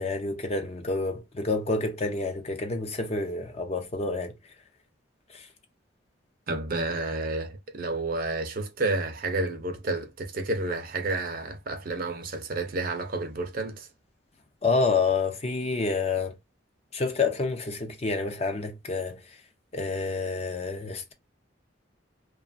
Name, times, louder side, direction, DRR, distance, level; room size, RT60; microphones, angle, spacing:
voice 1, 0.0-4.4 5.3-5.5 14.6-16.4 16.9-19.4 19.7-21.1, left 3 dB, 35° left, 0.5 m, -28 dB
voice 2, 6.5-13.9, right 2 dB, 50° right, 0.6 m, -30 dB
2.9 x 2.3 x 2.4 m
head